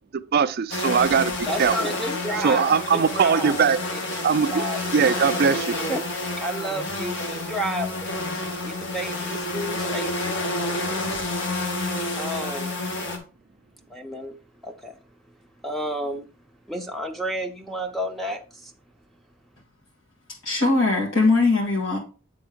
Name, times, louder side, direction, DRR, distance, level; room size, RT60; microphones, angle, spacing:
voice 1, 0.1-1.8 2.4-3.8 4.2-4.6 4.9-5.8, right 6 dB, 50° right, 0.4 m, -21 dB
sound 1, 0.7-13.2, left 2 dB, 65° left, 1.5 m, -29 dB
voice 2, 1.5-3.7 4.5-4.8 5.9-8.0 8.6-10.4 12.2-12.8 13.9-14.3 14.6-15.0 15.6-16.3 16.7-18.7, right 1 dB, ahead, 0.7 m, -31 dB
voice 3, 20.4-22.0, left 3 dB, 80° left, 2.0 m, -20 dB
8.4 x 3.4 x 5.1 m
head